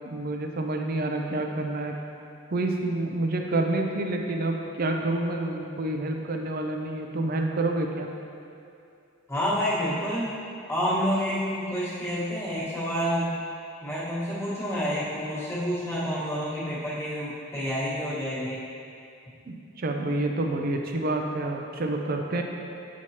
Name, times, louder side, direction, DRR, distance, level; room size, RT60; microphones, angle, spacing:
voice 1, 0.0-1.9 2.5-8.1 19.5-22.4, right 2 dB, 40° right, 2 dB, 0.5 m, -28 dB
voice 2, 9.3-10.3 10.7-13.3 13.8-18.6, equal, 10° left, -10 dB, 1.4 m, -28 dB
8.2 x 4.6 x 2.9 m, 2.5 s
head